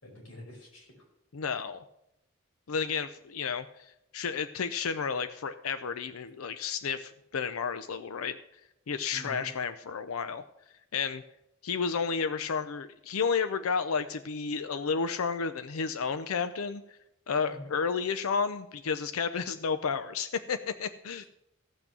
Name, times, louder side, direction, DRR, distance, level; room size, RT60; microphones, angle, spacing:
voice 1, 0.0-1.0 9.1-9.5 17.4-17.7, equal, 75° left, -2 dB, 5.1 m, -46 dB
voice 2, 1.3-1.8 2.7-8.4 8.9-10.4 10.9-11.2 11.6-16.8 17.3-21.2, left 5 dB, 90° left, 11 dB, 0.5 m, -32 dB
15.0 x 6.1 x 6.7 m, 0.82 s
head